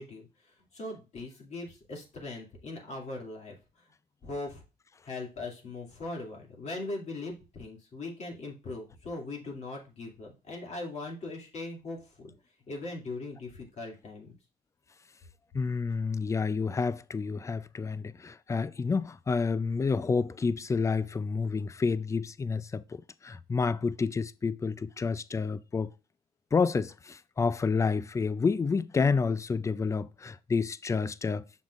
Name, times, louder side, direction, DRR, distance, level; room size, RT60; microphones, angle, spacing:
voice 1, 0.0-3.9 4.2-4.6 5.0-12.3 12.7-14.3, left 2 dB, 40° left, 2.5 m, -40 dB
voice 2, 15.5-25.9 26.5-31.4, left 4 dB, 20° left, 0.4 m, -29 dB
7.1 x 6.5 x 2.5 m
cardioid pair, 110°, 17 cm